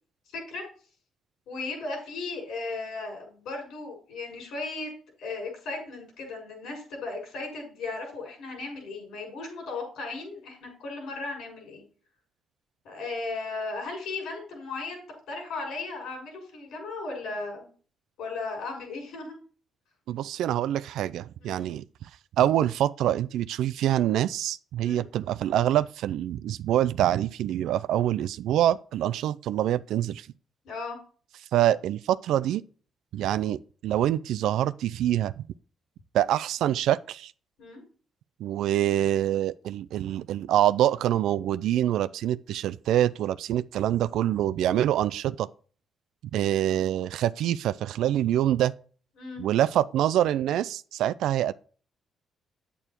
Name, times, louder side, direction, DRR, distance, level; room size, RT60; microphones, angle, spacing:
voice 1, 0.3-0.7 1.5-4.9 5.2-11.8 12.8-17.7 18.2-19.4 21.4-21.7 24.8-25.0 30.6-31.0 37.6-37.8 49.2-49.4, left 3 dB, 80° left, 6.4 m, -36 dB
voice 2, 20.1-21.8 22.4-30.3 31.5-32.6 33.1-35.3 36.1-37.3 38.4-45.5 46.3-48.7 49.4-51.5, right 12 dB, 85° right, 0.4 m, -25 dB
9.0 x 8.4 x 4.4 m
cardioid pair, 90°, 0 cm